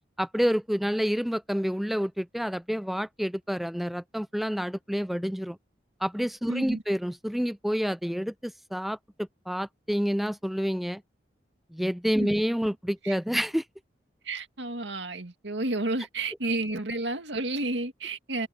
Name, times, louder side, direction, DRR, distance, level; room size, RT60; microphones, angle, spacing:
voice 1, 0.2-5.6 6.0-11.0 11.7-13.6, equal, ahead, 0.4 m, -28 dB
voice 2, 6.5-6.8 12.2-12.4 13.0-13.2 14.2-18.5, right 2 dB, 85° right, 2.2 m, -31 dB
head